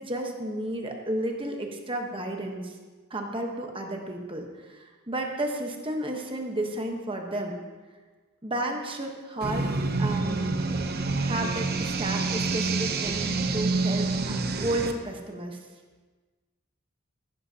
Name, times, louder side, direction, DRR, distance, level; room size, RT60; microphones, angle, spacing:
voice 1, 0.0-2.8 3.1-7.6 8.4-9.7 10.0-10.5 11.2-15.6, right 1 dB, 25° right, 2 dB, 1.1 m, -32 dB
sound 1, 9.4-14.9, right 3 dB, 50° right, 0.8 m, -27 dB
15.0 x 11.5 x 2.9 m, 1.3 s
head